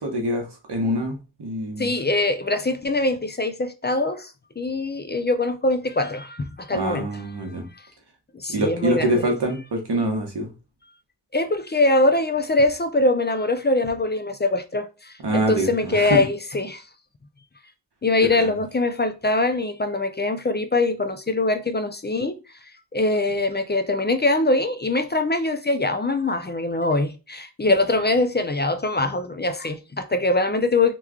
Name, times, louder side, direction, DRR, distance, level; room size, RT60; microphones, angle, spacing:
voice 1, 0.0-1.9 6.7-7.6 8.5-10.5 15.2-16.2 18.3-18.6, right 1 dB, 90° right, 1.0 m, -25 dB
voice 2, 1.8-7.1 8.3-9.2 11.3-16.9 18.0-22.4 22.9-30.9, left 2 dB, 30° left, 0.4 m, -23 dB
2.9 x 2.3 x 3.5 m
wide cardioid pair, 60°, 39 cm